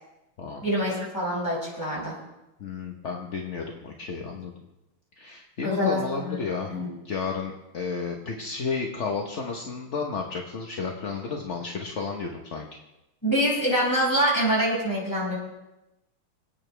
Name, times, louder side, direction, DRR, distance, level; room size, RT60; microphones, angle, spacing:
voice 1, 0.6-2.1 5.6-6.4 6.7-6.9 13.2-15.4, equal, 10° left, -6 dB, 5.4 m, -25 dB
voice 2, 2.6-4.6 5.2-6.7 7.0-12.7, left 5 dB, 45° left, 1 dB, 1.0 m, -32 dB
26.0 x 9.0 x 3.4 m, 0.95 s
omnidirectional pair, 2.4 m